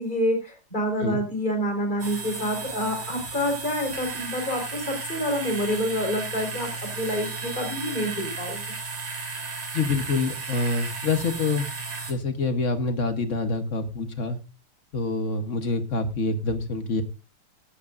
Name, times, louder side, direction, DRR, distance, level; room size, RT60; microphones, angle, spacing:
voice 1, 0.0-6.7 6.9-8.6, equal, 20° left, 4 dB, 4.2 m, -27 dB
sound 1, 2.0-12.1, right 4 dB, 75° right, 3.5 m, -34 dB
voice 2, 9.7-11.7 12.1-14.4 14.9-17.0, left 3 dB, 40° left, 8 dB, 1.3 m, -26 dB
17.0 x 11.5 x 2.6 m, 0.30 s
omnidirectional pair, 2.4 m